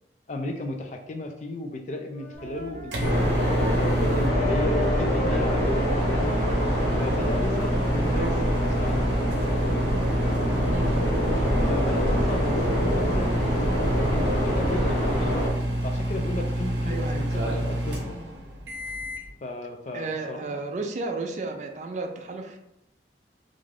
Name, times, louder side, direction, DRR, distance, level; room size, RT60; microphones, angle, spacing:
voice 1, 0.3-6.3 7.0-9.2 11.7-15.5 15.8-18.2 19.4-20.6, left 1 dB, 40° left, 4 dB, 0.4 m, -34 dB
Wind instrument woodwind instrument, 2.1-7.6, left 4 dB, 25° left, 0.9 m, -37 dB
sound 1, 2.3-19.3, right 1 dB, 85° right, 0.6 m, -28 dB
sound 2, 3.0-15.5, equal, 55° left, 0.9 m, -26 dB
voice 2, 16.9-17.3 19.9-22.6, right 3 dB, 40° right, 4 dB, 0.3 m, -33 dB
2.5 x 2.3 x 3.2 m, 0.82 s
head